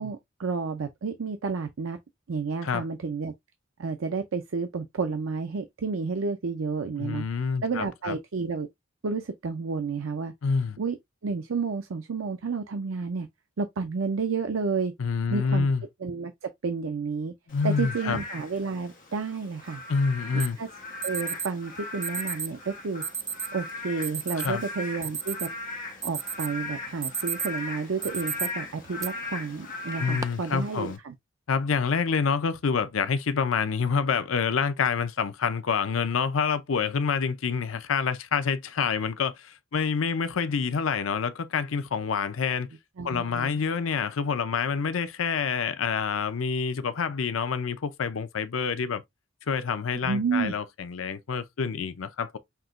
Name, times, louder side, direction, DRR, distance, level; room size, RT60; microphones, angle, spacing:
voice 1, 0.0-2.0 2.3-3.3 3.8-7.2 7.6-8.7 9.0-10.3 10.8-11.0 11.2-13.3 13.6-14.9 15.3-15.7 16.0-17.3 17.6-19.8 20.3-20.7 21.0-23.0 23.5-25.5 26.0-31.1 43.0-43.5 50.0-50.5, right 4 dB, 85° right, 0.6 m, -31 dB
voice 2, 7.0-8.2 10.4-10.8 15.0-15.8 17.5-18.2 19.9-20.6 24.4-24.6 30.0-31.0 31.5-42.7 43.0-49.0 49.5-52.4, left 5 dB, 85° left, 0.6 m, -27 dB
Frog / Rain, 17.5-31.0, left 2 dB, 40° left, 1.5 m, -39 dB
Alarm, 20.4-20.5 21.0-21.5 22.0-22.5 23.0-23.5 24.0-24.5 24.9-25.6 26.0-26.5 26.9-27.6 28.0-28.5 29.0-29.1 29.9-30.2, right 6 dB, 15° right, 0.3 m, -32 dB
5.8 x 2.9 x 2.4 m
head